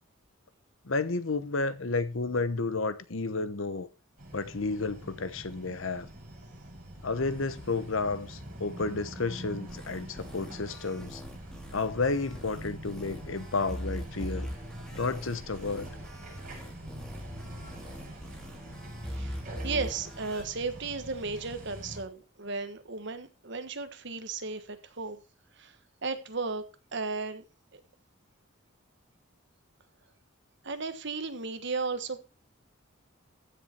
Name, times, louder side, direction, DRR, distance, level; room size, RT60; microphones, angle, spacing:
voice 1, 0.8-3.9 4.3-6.1 7.0-11.2 11.7-14.5 14.9-15.9, left 3 dB, 70° left, 1.0 m, -31 dB
sound 1, 4.2-22.0, right 1 dB, 40° right, 7.3 m, -44 dB
sound 2, 9.7-20.4, equal, 5° left, 2.4 m, -42 dB
voice 2, 19.0-25.2 25.6-25.8 26.0-26.6 26.9-27.4 27.7-27.8 30.6-32.2, right 4 dB, 60° right, 1.4 m, -35 dB
15.0 x 6.9 x 4.4 m
head